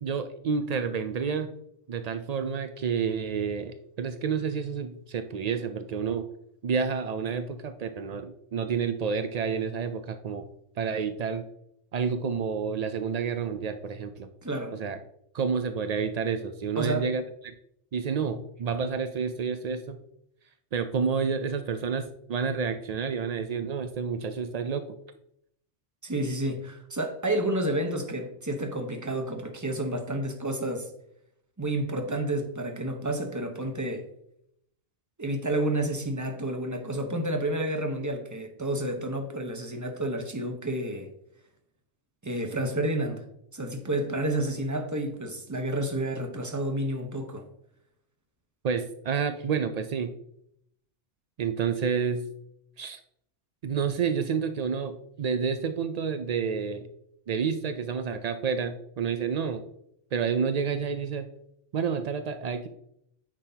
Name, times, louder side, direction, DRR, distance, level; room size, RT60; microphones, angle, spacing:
voice 1, 0.0-1.5 1.9-6.3 6.6-10.5 10.8-11.4 11.9-14.3 14.7-15.0 15.3-17.5 17.9-20.0 20.7-24.8 48.6-50.1 51.4-52.3 52.8-53.0 53.6-56.9 57.3-59.6 60.1-61.3 61.7-62.7, right 6 dB, 80° right, 9 dB, 0.3 m, -29 dB
voice 2, 14.4-14.8 16.8-17.1 26.0-30.9 31.6-34.0 35.2-41.1 42.2-43.2 43.5-47.4, right 1 dB, 15° right, 4 dB, 0.8 m, -30 dB
9.0 x 6.2 x 2.8 m, 0.75 s
omnidirectional pair, 1.3 m